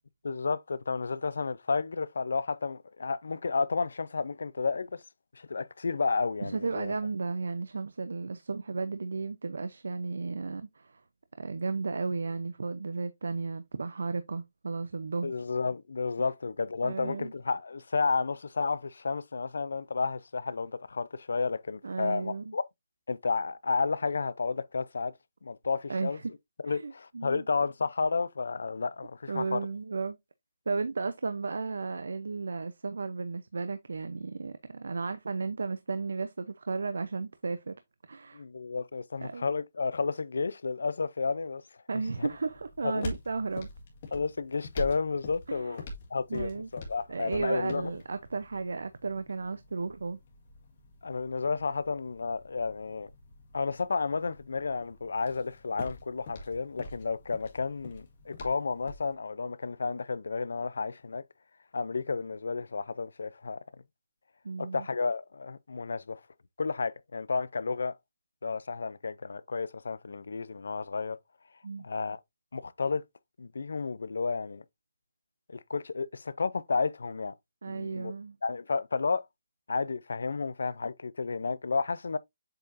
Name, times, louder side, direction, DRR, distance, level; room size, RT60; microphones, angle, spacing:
voice 1, 0.2-5.0 5.3-6.9 15.2-22.6 23.1-25.1 25.4-26.2 26.6-29.7 38.3-41.6 42.2-42.3 42.8-43.0 44.1-45.8 46.1-47.9 51.0-53.1 53.5-61.2 61.7-63.6 64.6-66.2 66.6-67.9 68.4-71.2 71.8-72.2 72.5-73.0 73.4-74.6 75.5-77.3 77.7-78.1 78.4-79.3 79.7-82.2, left 4 dB, 75° left, 0.5 m, -32 dB
voice 2, 6.4-11.0 11.4-15.3 16.8-17.3 21.8-22.5 25.9-26.3 26.7-27.4 29.3-30.2 30.7-37.7 38.1-38.4 39.2-39.5 41.9-43.7 45.5-45.8 46.3-46.7 47.1-50.2 64.4-64.9 71.6-71.9 77.6-78.4, right 4 dB, 90° right, 0.7 m, -34 dB
sound 1, 42.1-59.1, left 2 dB, 35° left, 1.8 m, -46 dB
7.7 x 4.7 x 2.6 m
hypercardioid pair, 180°, 0 cm